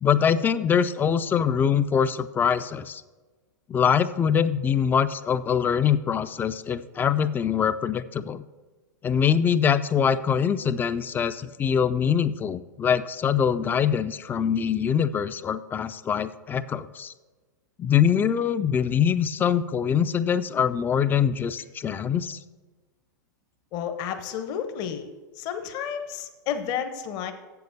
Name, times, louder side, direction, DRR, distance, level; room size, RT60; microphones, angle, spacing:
voice 1, 0.0-3.0 3.7-8.4 9.0-17.1 17.8-22.4, left 8 dB, 20° left, 14 dB, 0.4 m, -23 dB
voice 2, 23.7-25.1 25.4-27.3, left 8 dB, 45° left, 8 dB, 0.9 m, -31 dB
7.8 x 6.9 x 6.6 m, 1.3 s
hypercardioid pair, 100°, 10 cm